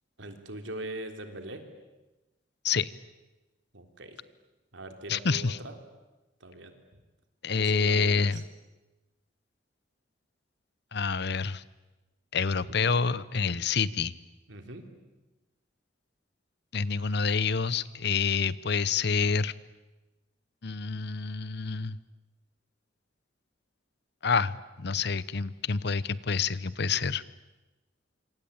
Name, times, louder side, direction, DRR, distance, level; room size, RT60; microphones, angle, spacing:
voice 1, 0.2-1.6 3.7-4.2 4.7-5.8 6.4-6.7 7.5-8.4 14.5-14.9 26.9-27.0, right 1 dB, 85° right, 6 dB, 3.6 m, -41 dB
voice 2, 5.1-5.6 7.4-8.4 10.9-11.6 12.3-14.1 16.7-19.5 20.6-22.0 24.2-27.2, left 5 dB, 60° left, 18 dB, 0.9 m, -27 dB
26.5 x 25.5 x 8.8 m, 1.1 s
head